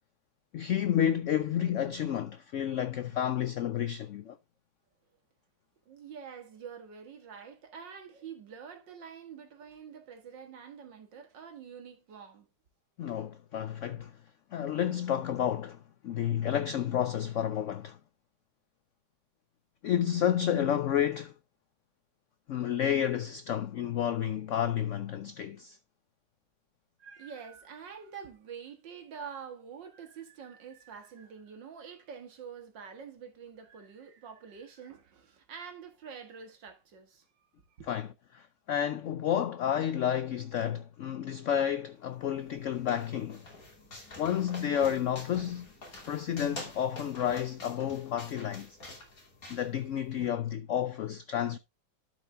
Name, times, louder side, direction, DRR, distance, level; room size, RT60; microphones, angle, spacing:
voice 1, 0.5-4.4 13.0-14.1 14.5-18.0 19.8-21.3 22.5-25.8 37.9-43.4 44.2-45.7 46.1-48.8 49.5-51.6, left 10 dB, 80° left, 0.6 m, -30 dB
voice 2, 5.9-12.5 27.0-37.3 37.8-37.9, right 7 dB, 85° right, 2.2 m, -46 dB
sound 1, 42.1-50.3, left 2 dB, 50° left, 3.2 m, -47 dB
12.0 x 5.1 x 3.4 m
omnidirectional pair, 1.9 m